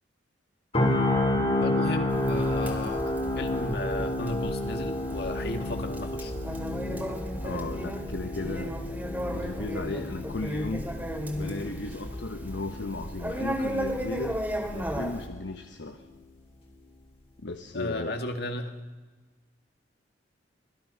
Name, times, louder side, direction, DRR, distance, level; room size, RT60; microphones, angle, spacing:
sound 1, 0.7-14.7 15.1-15.3, left 1 dB, 30° left, 3.7 m, -31 dB
voice 1, 1.6-6.4 17.7-18.7, left 1 dB, 60° left, 6 dB, 2.1 m, -34 dB
Conversation, 2.1-15.3, equal, 10° right, 2.3 m, -35 dB
voice 2, 7.4-8.8 9.3-10.9 11.4-14.4 14.7-16.0 17.4-18.2, left 2 dB, 75° left, 6 dB, 1.1 m, -35 dB
26.0 x 19.5 x 5.7 m, 1.3 s
head